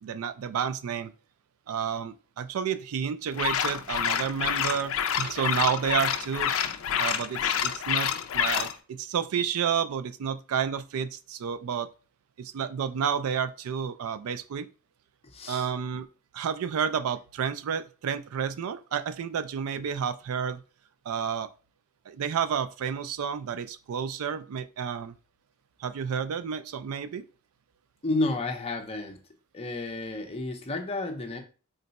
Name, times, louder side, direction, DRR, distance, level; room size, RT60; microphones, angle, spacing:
voice 1, 0.0-1.1 1.7-6.5 7.0-11.9 12.4-14.7 15.5-16.1 16.3-20.6 21.1-21.5 22.1-25.2 25.8-27.2, right 7 dB, 85° right, 11 dB, 0.4 m, -30 dB
sound 1, 3.3-8.7, left 8 dB, 70° left, 0.4 m, -28 dB
voice 2, 15.2-15.7 28.0-29.2 29.5-31.4, left 2 dB, 30° left, 4 dB, 0.6 m, -31 dB
3.8 x 2.2 x 4.0 m, 0.35 s
head